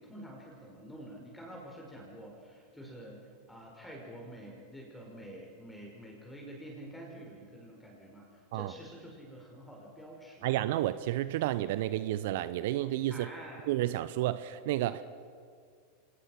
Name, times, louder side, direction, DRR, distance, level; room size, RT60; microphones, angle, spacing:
voice 1, 0.0-10.6 13.1-13.7, right 1 dB, 5° left, -1 dB, 5.6 m, -48 dB
voice 2, 10.4-13.3 13.7-15.0, right 14 dB, 60° right, 14 dB, 0.7 m, -31 dB
26.0 x 20.0 x 6.0 m, 2.2 s
hypercardioid pair, 90°, 0 cm